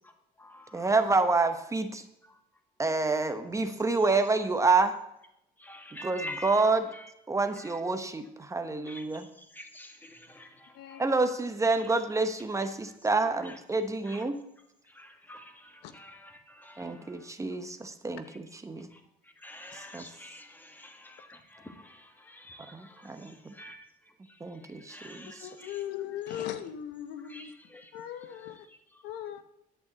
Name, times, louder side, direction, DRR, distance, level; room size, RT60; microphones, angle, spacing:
voice 1, 0.0-1.2 2.2-2.4 4.0-4.2 5.6-7.1 7.6-7.8 8.8-11.3 11.7-11.9 12.6-12.7 13.4-13.6 14.0-14.2 14.8-17.3 18.2-18.4 18.9-25.8 26.3-26.4 27.2-29.4, left 1 dB, 10° left, 1.8 m, -49 dB
voice 2, 0.7-2.0 2.8-5.0 6.0-6.8 7.3-9.2 11.0-14.4 16.8-18.9 19.9-20.0 22.7-23.5 24.4-25.3, right 3 dB, 20° right, 0.9 m, -28 dB
voice 3, 10.7-11.1 15.8-15.9 25.4-27.5 27.9-28.7 29.0-29.4, left 11 dB, 85° left, 1.0 m, -38 dB
11.0 x 5.7 x 7.9 m
cardioid pair, 110°, 17 cm